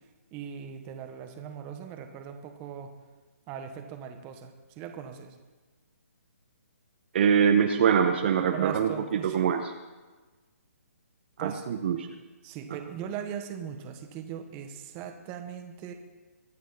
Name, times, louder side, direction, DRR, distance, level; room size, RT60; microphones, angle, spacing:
voice 1, 0.3-2.9 3.5-5.4 8.5-9.5 11.4-11.6 12.4-15.9, right 8 dB, 20° right, 5 dB, 1.4 m, -39 dB
voice 2, 7.1-9.6 11.4-12.1, right 7 dB, 45° right, 5 dB, 1.2 m, -24 dB
23.5 x 9.3 x 4.2 m, 1.2 s
hypercardioid pair, 160°, 8 cm